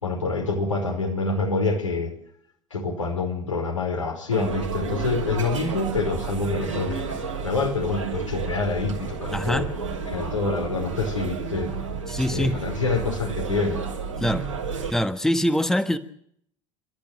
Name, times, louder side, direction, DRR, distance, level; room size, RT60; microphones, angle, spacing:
voice 1, 0.0-2.1 2.7-7.0 7.4-9.7 10.1-11.7 12.3-13.8, left 3 dB, 85° left, 0 dB, 4.9 m, -26 dB
sound 1, 4.3-14.9, right 5 dB, 90° right, 4.4 m, -31 dB
voice 2, 9.3-9.7 12.1-12.6 14.2-14.4 14.9-16.0, equal, 5° left, 10 dB, 1.4 m, -23 dB
28.5 x 12.5 x 7.9 m, 0.67 s
figure-of-eight pair, 65°, 16 cm